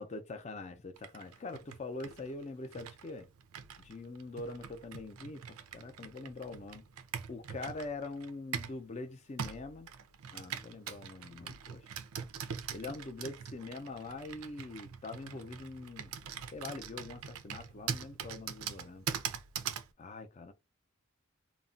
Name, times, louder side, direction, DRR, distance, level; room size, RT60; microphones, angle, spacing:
voice 1, 0.0-3.3 3.8-6.8 7.3-9.9 10.3-11.9 12.7-16.2 16.5-19.1 20.0-20.5, left 3 dB, 30° left, 0.4 m, -43 dB
Computer keyboard, 1.0-8.8 9.4-19.9, right 7 dB, 85° right, 0.4 m, -43 dB
2.3 x 2.0 x 3.8 m
head